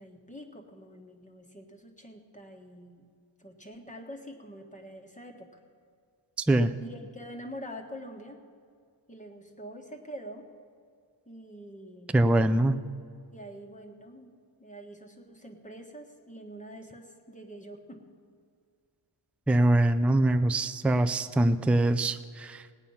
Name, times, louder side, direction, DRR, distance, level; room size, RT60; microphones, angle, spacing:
voice 1, 0.0-3.1 3.4-5.5 6.8-8.4 9.1-10.5 11.2-12.2 13.3-18.0, equal, 15° left, 3 dB, 1.5 m, -45 dB
voice 2, 12.1-12.8 19.5-22.6, right 1 dB, 5° right, 9 dB, 0.3 m, -23 dB
18.0 x 9.0 x 5.6 m, 2.2 s
wide cardioid pair, 110°, 46 cm